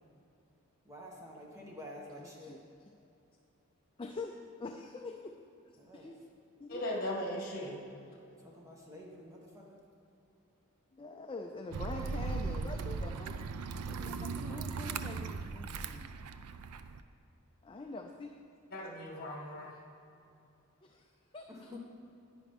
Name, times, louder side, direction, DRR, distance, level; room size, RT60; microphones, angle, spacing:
voice 1, 0.8-2.5 5.8-6.1 8.4-9.8 14.0-15.0 21.5-21.8, left 1 dB, 15° right, -2 dB, 1.2 m, -49 dB
voice 2, 2.2-2.6 4.0-5.3 5.7-6.2 6.6-6.8 10.9-13.4 13.9-16.1 17.6-18.3 20.8-21.1 21.3-21.7, left 3 dB, 25° left, 2 dB, 0.4 m, -45 dB
voice 3, 6.7-7.8 18.7-19.8, left 1 dB, 40° left, -2 dB, 1.8 m, -38 dB
sound 1, 11.7-17.0, right 4 dB, 90° right, 0.4 m, -38 dB
10.5 x 9.3 x 3.6 m, 2.7 s
head